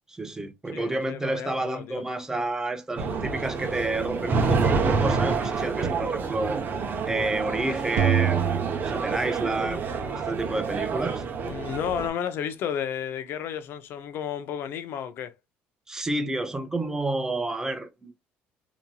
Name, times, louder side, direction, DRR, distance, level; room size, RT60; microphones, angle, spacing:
voice 1, 0.1-6.6 7.1-8.4 8.8-9.8 10.1-11.2 15.9-18.1, right 2 dB, 15° right, 0.7 m, -30 dB
voice 2, 0.7-2.0 11.5-15.3, left 9 dB, 65° left, 0.6 m, -32 dB
sound 1, 3.0-12.1, right 4 dB, 50° right, 0.7 m, -28 dB
sound 2, 8.0-10.1, right 8 dB, 75° right, 0.4 m, -26 dB
2.9 x 2.6 x 2.2 m
cardioid pair, 100°, 4 cm